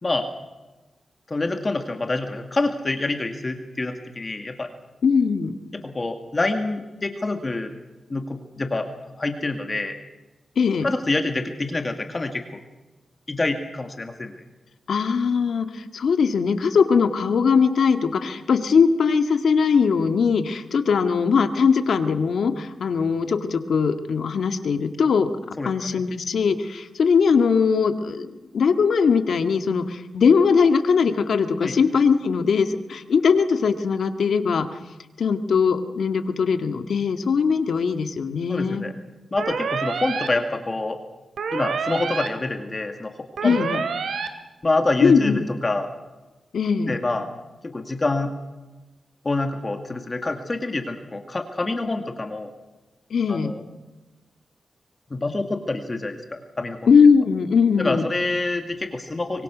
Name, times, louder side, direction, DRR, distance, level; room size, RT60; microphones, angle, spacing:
voice 1, 1.3-4.7 5.7-7.7 8.1-10.0 10.8-12.6 13.3-14.3 25.6-26.0 31.6-31.8 38.5-39.0 39.3-41.0 41.5-43.8 44.6-45.9 46.9-47.3 47.6-48.3 49.2-52.5 53.3-53.6 55.1-56.8 57.8-59.4, left 2 dB, 30° left, 5 dB, 2.1 m, -26 dB
voice 2, 5.0-5.6 10.6-10.9 14.9-34.7 35.2-38.8 43.4-43.8 45.0-45.4 46.5-47.0 53.1-53.5 56.9-58.1, left 5 dB, 75° left, 7 dB, 1.8 m, -20 dB
sound 1, 39.4-40.3 41.4-42.3 43.4-44.3, right 5 dB, 85° right, 2.5 m, -27 dB
24.5 x 23.5 x 6.2 m, 1.1 s
wide cardioid pair, 110°, 0 cm